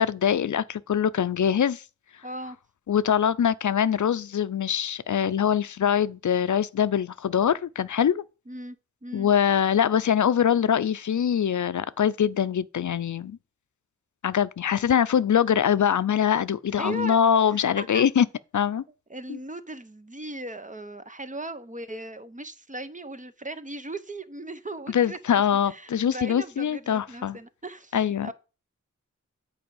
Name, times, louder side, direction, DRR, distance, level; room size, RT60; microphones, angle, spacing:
voice 1, 0.0-1.8 2.9-8.2 9.1-13.4 14.2-18.3 18.5-18.8 19.3-19.4 24.9-27.4 27.9-28.3, left 8 dB, 75° left, 0.5 m, -23 dB
voice 2, 2.2-2.6 8.5-8.8 9.0-9.3 16.7-17.2 17.8-18.0 19.1-25.2 25.6-28.3, right 2 dB, 25° right, 0.8 m, -38 dB
8.6 x 4.8 x 7.0 m
wide cardioid pair, 85°, 30 cm